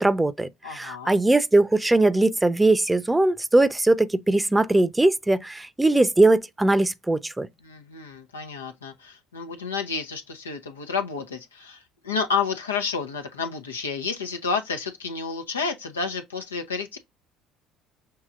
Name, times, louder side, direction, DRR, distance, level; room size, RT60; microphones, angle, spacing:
voice 1, 0.0-7.5, right 2 dB, 10° right, 0.7 m, -20 dB
voice 2, 0.6-1.2 7.6-17.0, left 5 dB, 90° left, 0.7 m, -30 dB
6.6 x 3.0 x 2.4 m
hypercardioid pair, 60°, 0 cm